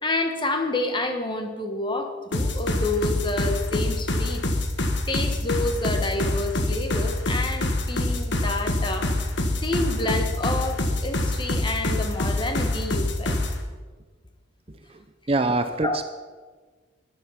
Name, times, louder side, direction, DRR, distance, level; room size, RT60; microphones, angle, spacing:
voice 1, 0.0-4.4 5.1-9.1 9.6-13.4 15.8-16.0, left 2 dB, 25° left, 6 dB, 1.3 m, -29 dB
sound 1, 2.3-13.6, left 1 dB, 60° left, 1.3 m, -25 dB
voice 2, 14.7-16.1, right 2 dB, 30° right, 9 dB, 0.5 m, -26 dB
14.0 x 10.0 x 5.7 m, 1.4 s
head